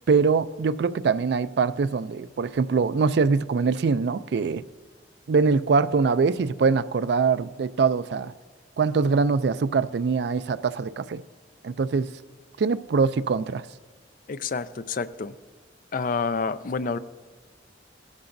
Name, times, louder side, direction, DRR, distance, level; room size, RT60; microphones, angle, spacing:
voice 1, 0.1-4.6 5.3-8.3 8.8-11.2 11.6-12.1 12.6-13.6, right 5 dB, 60° right, 0.4 m, -23 dB
voice 2, 14.3-15.3 15.9-17.0, left 4 dB, 45° left, 0.4 m, -28 dB
16.0 x 12.5 x 2.6 m
head